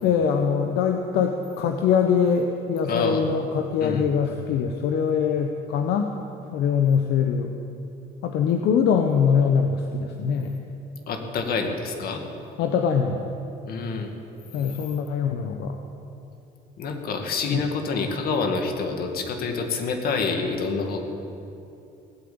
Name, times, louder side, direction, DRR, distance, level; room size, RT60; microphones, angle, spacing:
voice 1, 0.0-6.2 6.5-7.5 8.2-10.7 12.6-13.3 14.5-15.8 17.4-17.6, left 6 dB, 80° left, 4 dB, 1.0 m, -23 dB
voice 2, 2.9-3.3 3.8-4.0 11.1-12.2 13.7-14.1 16.8-21.0, left 4 dB, 65° left, 4 dB, 2.3 m, -27 dB
18.5 x 9.0 x 8.7 m, 2.8 s
cardioid pair, 110°, 17 cm